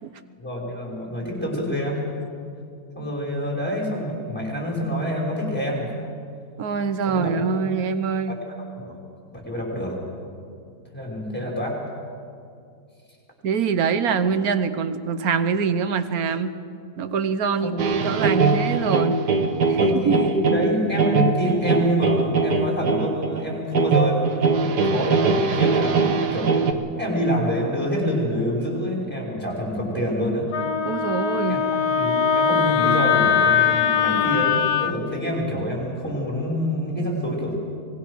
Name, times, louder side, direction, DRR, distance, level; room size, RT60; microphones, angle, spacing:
voice 1, 0.4-2.0 3.0-5.9 7.1-7.3 8.3-9.0 9.3-10.0 10.9-11.8 17.6-17.7 19.8-26.5 27.0-30.5 31.5-37.6, equal, 5° left, -2 dB, 5.3 m, -27 dB
voice 2, 6.6-8.4 13.4-16.5 17.0-19.2 19.7-20.2 30.8-31.6, right 6 dB, 65° right, 11 dB, 1.4 m, -24 dB
sound 1, 17.8-26.7, right 4 dB, 80° right, 1.8 m, -21 dB
Wind instrument woodwind instrument, 30.5-34.9, left 7 dB, 75° left, 1.6 m, -21 dB
24.5 x 20.0 x 6.5 m, 2.4 s
omnidirectional pair, 1.7 m